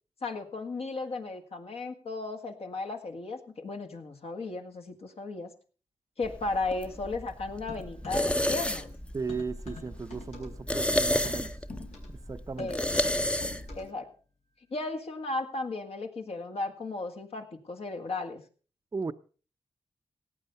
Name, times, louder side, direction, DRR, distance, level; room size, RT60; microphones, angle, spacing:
voice 1, 0.2-5.5 6.2-8.9 12.6-12.9 13.7-14.1 14.7-18.4, left 3 dB, 60° left, 2.0 m, -35 dB
sound 1, 6.2-13.8, left 1 dB, 10° left, 0.7 m, -32 dB
sound 2, 7.7-9.0 9.3-14.0, left 3 dB, 80° left, 4.1 m, -46 dB
voice 2, 9.1-11.6 12.1-12.7 18.9-19.1, right 4 dB, 30° right, 0.6 m, -36 dB
17.5 x 8.3 x 5.3 m
cardioid pair, 80°, 11 cm